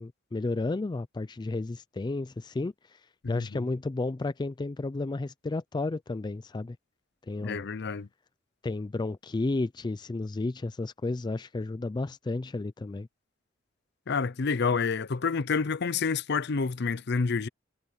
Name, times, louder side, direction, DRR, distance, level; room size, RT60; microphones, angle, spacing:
voice 1, 0.0-2.7 3.3-6.8 7.3-7.7 8.6-13.1, left 2 dB, 25° left, 0.4 m, -32 dB
voice 2, 3.2-3.6 7.4-8.1 14.1-17.5, left 5 dB, 60° left, 0.6 m, -28 dB
head